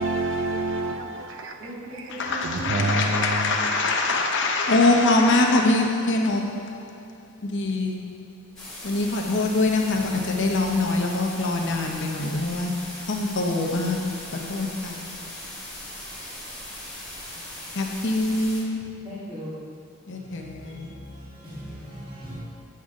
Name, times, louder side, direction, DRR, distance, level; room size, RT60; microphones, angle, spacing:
voice 1, 0.0-2.1 2.4-3.5, right 2 dB, 65° right, 0.7 m, -28 dB
voice 2, 1.6-3.0 19.0-19.7 20.1-22.4, equal, 30° right, 2.0 m, -39 dB
voice 3, 2.1-15.3 17.7-19.4 20.1-21.0, left 2 dB, 60° left, 1.0 m, -24 dB
sound 1, 8.6-18.6, left 1 dB, 5° left, 2.3 m, -39 dB
9.4 x 7.0 x 3.7 m
head